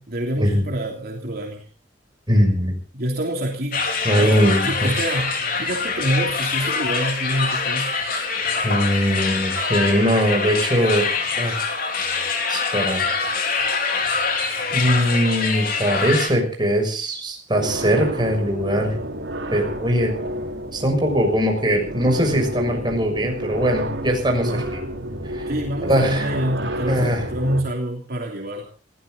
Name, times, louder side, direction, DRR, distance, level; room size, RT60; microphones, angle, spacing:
voice 1, 0.0-1.6 2.9-3.9 4.2-4.3 4.6-8.0 24.3-24.7 25.5-28.6, right 1 dB, 55° right, 1 dB, 3.1 m, -26 dB
voice 2, 2.3-2.7 4.0-4.9 8.6-11.1 11.4-11.7 12.5-13.1 14.7-18.9 19.5-20.1 20.7-24.6 25.3-25.5 25.8-26.2 26.9-27.2, equal, 25° right, 2 dB, 6.6 m, -21 dB
sound 1, 3.7-16.3, left 4 dB, 50° left, 3.8 m, -24 dB
sound 2, 17.6-27.6, right 1 dB, 75° right, 4.2 m, -30 dB
22.0 x 17.0 x 3.9 m, 0.38 s
head